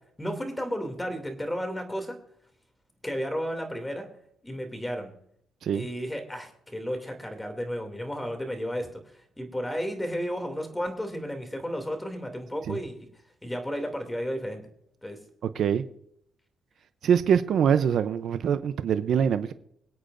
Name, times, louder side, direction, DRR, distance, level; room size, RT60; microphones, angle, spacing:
voice 1, 0.2-2.2 3.0-4.1 4.4-5.1 5.7-13.0 13.4-14.6 15.0-15.2, equal, 10° left, 5 dB, 2.6 m, -33 dB
voice 2, 17.0-19.5, right 8 dB, 65° right, 11 dB, 0.6 m, -24 dB
24.5 x 8.4 x 2.6 m, 0.69 s
cardioid pair, 90°, 0 cm